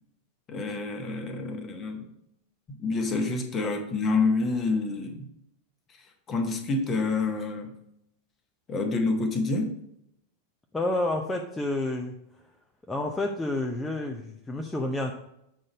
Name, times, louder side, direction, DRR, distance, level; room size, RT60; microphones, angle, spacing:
voice 1, 0.5-2.1 2.7-5.2 6.3-7.7 8.7-9.7, left 3 dB, 25° left, 5 dB, 1.2 m, -28 dB
voice 2, 10.7-12.1 12.9-15.1, left 2 dB, 10° left, 1 dB, 0.6 m, -29 dB
7.5 x 4.0 x 5.2 m, 0.78 s
figure-of-eight pair, 90°, 0 cm